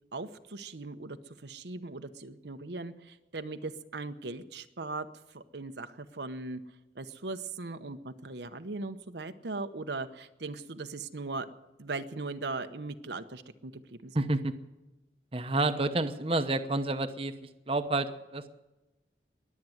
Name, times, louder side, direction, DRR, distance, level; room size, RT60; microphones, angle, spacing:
voice 1, 0.1-6.6 6.9-11.5 11.8-14.2, right 3 dB, 75° right, 8 dB, 1.0 m, -39 dB
voice 2, 14.1-14.5 15.3-17.3 17.7-18.5, right 2 dB, 30° right, 8 dB, 0.9 m, -29 dB
21.5 x 8.6 x 7.8 m, 1.0 s
head